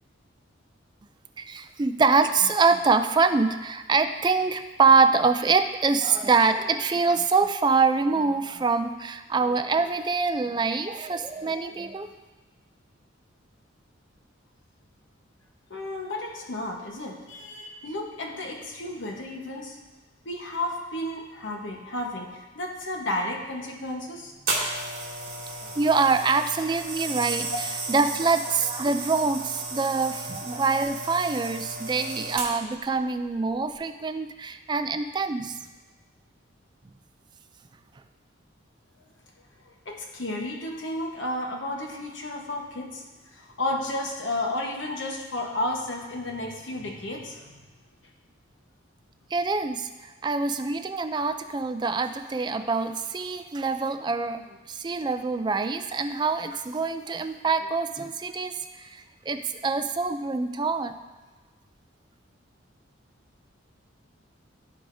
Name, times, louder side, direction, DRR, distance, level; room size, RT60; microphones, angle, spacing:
voice 1, 1.4-12.1 25.8-27.5 27.9-35.6 49.3-60.9, right 4 dB, 20° right, 9 dB, 0.3 m, -25 dB
voice 2, 15.7-19.8 20.2-24.3 27.5-27.7 39.6-47.6, left 1 dB, 65° left, 1 dB, 1.1 m, -32 dB
sound 1, 24.5-32.8 33.5-33.7, right 3 dB, 45° right, 2.1 m, -34 dB
14.5 x 4.9 x 2.7 m, 1.3 s
head